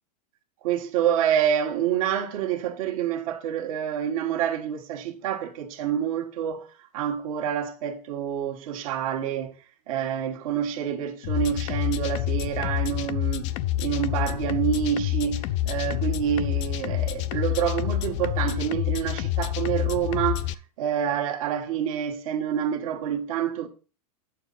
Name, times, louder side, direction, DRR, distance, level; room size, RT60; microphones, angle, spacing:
voice 1, 0.6-6.7 6.9-9.5 9.9-13.5 13.8-20.5 20.8-23.7, right 9 dB, 60° right, 1.5 m, -27 dB
sound 1, 11.2-20.5, left 14 dB, 50° left, 0.5 m, -28 dB
8.4 x 7.0 x 4.0 m
hypercardioid pair, 135°, 20 cm